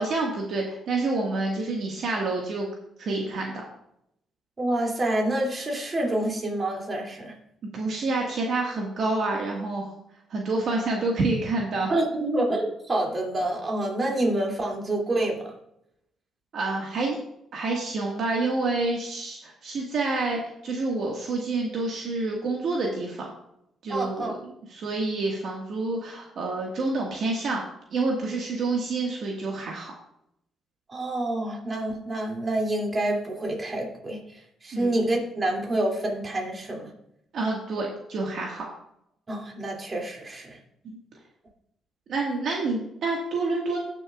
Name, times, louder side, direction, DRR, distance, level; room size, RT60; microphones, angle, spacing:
voice 1, 0.0-2.7 3.0-3.6 7.7-9.9 10.3-11.9 16.5-17.2 17.5-23.3 23.8-27.6 27.9-29.9 34.7-34.9 37.3-38.6 40.8-41.0 42.1-43.8, right 3 dB, 65° right, -1 dB, 1.7 m, -28 dB
voice 2, 4.6-7.3 11.9-15.5 23.9-24.4 30.9-34.2 34.6-36.9 39.3-40.6, right 1 dB, 30° right, 0 dB, 2.6 m, -27 dB
18.0 x 6.8 x 2.4 m, 0.78 s
cardioid pair, 90°, 0 cm